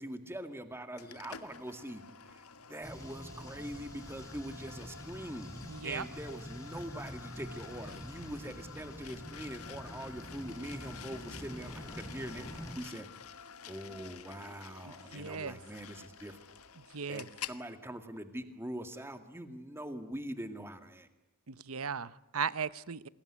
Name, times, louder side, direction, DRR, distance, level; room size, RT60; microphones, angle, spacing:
voice 1, 0.0-5.5 5.8-13.1 13.6-16.4 17.1-21.1, right 1 dB, 10° right, 8 dB, 2.1 m, -43 dB
sound 1, 1.0-17.6, left 7 dB, 85° left, 1.5 m, -50 dB
sound 2, 2.8-12.7, equal, 15° left, 7.4 m, -46 dB
voice 2, 5.7-6.1 14.8-15.6 16.9-17.3 21.5-23.1, right 6 dB, 80° right, 17 dB, 0.9 m, -37 dB
27.5 x 20.5 x 9.8 m, 0.93 s
head